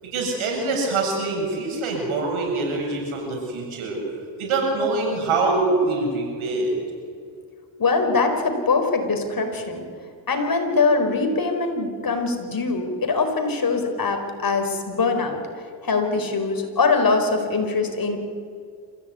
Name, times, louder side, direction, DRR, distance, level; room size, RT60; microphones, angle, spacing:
voice 1, 0.0-4.0 4.4-6.7, right 3 dB, 90° right, 0 dB, 7.4 m, -24 dB
voice 2, 7.8-9.8 10.3-18.2, left 4 dB, 45° left, 5 dB, 4.6 m, -23 dB
27.0 x 15.5 x 9.5 m, 2.3 s
cardioid pair, 75°, 48 cm